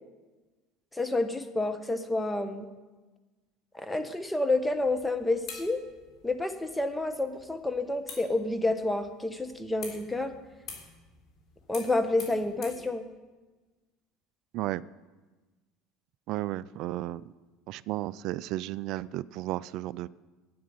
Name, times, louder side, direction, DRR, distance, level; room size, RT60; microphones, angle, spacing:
voice 1, 0.9-2.7 3.7-5.8 6.2-10.3 11.7-13.1, left 2 dB, 10° left, 8 dB, 1.3 m, -29 dB
sound 1, 4.4-12.9, left 5 dB, 55° left, 3.6 m, -48 dB
voice 2, 16.3-17.3 17.7-20.1, right 15 dB, 60° right, 20 dB, 0.3 m, -33 dB
9.4 x 9.4 x 7.9 m, 1.2 s
hypercardioid pair, 80°, 0 cm